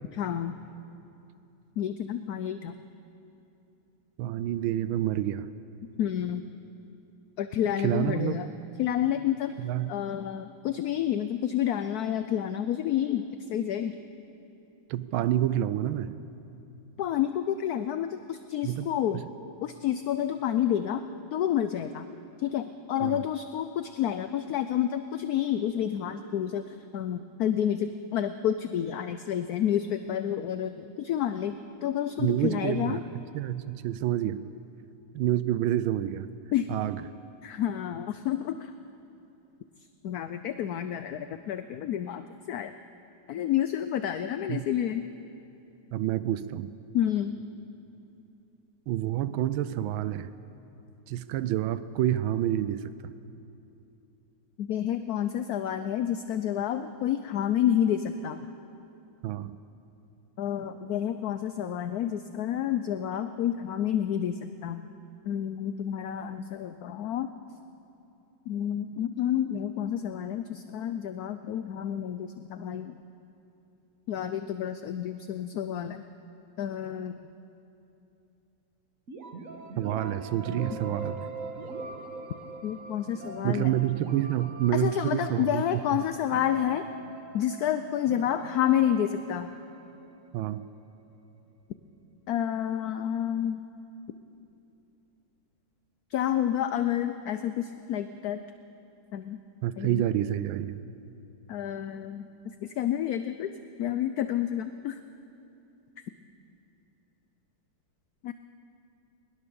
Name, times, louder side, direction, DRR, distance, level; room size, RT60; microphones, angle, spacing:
voice 1, 0.2-0.6 1.8-2.7 6.0-6.5 7.4-8.5 8.8-9.5 9.9-13.9 17.0-19.2 19.6-21.0 21.3-22.1 22.4-33.0 36.5-36.7 37.4-38.7 40.0-42.7 43.3-45.1 46.9-47.4 54.6-58.5 60.4-64.8 65.3-67.3 68.5-73.0 74.1-76.0 76.6-77.2 82.6-83.7 84.7-86.9 87.3-89.5 92.3-93.7 96.1-98.4 99.1-99.4 99.8-100.0 101.5-102.3 102.8-103.5 103.8-105.0 108.2-108.3, left 10 dB, 65° left, 10 dB, 0.9 m, -29 dB
voice 2, 4.2-5.5 7.8-8.3 9.6-9.9 14.9-16.2 18.6-19.2 23.0-23.2 32.2-34.5 35.1-36.3 36.7-37.0 44.5-44.7 45.9-46.7 48.9-50.3 51.1-53.1 59.2-59.6 79.8-81.3 83.4-86.0 90.3-90.6 99.6-100.8, right 12 dB, 90° right, 14 dB, 1.5 m, -28 dB
sound 1, 79.1-90.8, right 3 dB, 45° right, 1.8 m, -42 dB
20.5 x 20.5 x 7.0 m, 2.8 s
omnidirectional pair, 2.1 m